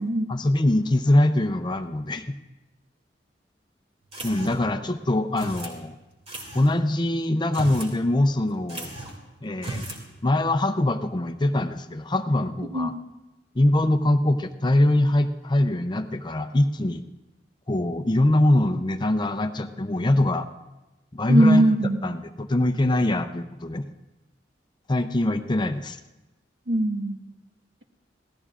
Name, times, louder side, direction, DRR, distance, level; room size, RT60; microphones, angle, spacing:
voice 1, 0.3-2.3 4.2-6.0 6.5-8.9 9.4-9.8 10.2-12.9 13.5-17.0 17.7-20.5 21.1-21.7 22.0-23.8 24.9-26.0, left 1 dB, 25° left, 8 dB, 0.6 m, -23 dB
sound 1, 4.1-4.8 5.4-5.8 6.3-6.7 7.4-8.0 8.2-8.3 8.7-9.2 9.6-10.0, right 2 dB, 35° right, 2.3 m, -36 dB
voice 2, 21.3-22.1 26.7-27.2, right 1 dB, 75° right, 3 dB, 1.5 m, -20 dB
26.0 x 17.5 x 2.5 m, 1.1 s
head